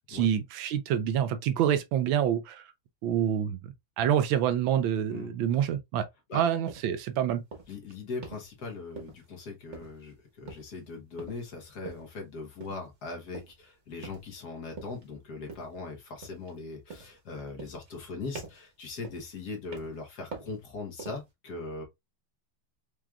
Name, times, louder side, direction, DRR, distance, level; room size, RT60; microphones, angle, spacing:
voice 1, 0.1-2.6 3.0-3.6 4.0-6.1 6.3-7.4, right 10 dB, 80° right, 1.3 m, -27 dB
sound 1, 6.7-6.9 7.5-7.8 8.2-8.5 9.0-9.4 9.7-10.1 10.5-10.8 11.2-11.5 11.8-12.1 12.6-12.9 13.3-13.6 14.0-14.4 14.8-15.1 15.5-15.8 16.2-16.6 16.9-17.2 17.6-18.1 18.3-18.7 19.0-19.3 19.7-20.0 20.3-20.6 21.0-21.3, right 4 dB, 40° right, 1.2 m, -44 dB
voice 2, 7.7-21.8, left 3 dB, 55° left, 1.5 m, -40 dB
4.8 x 3.0 x 2.3 m
omnidirectional pair, 2.2 m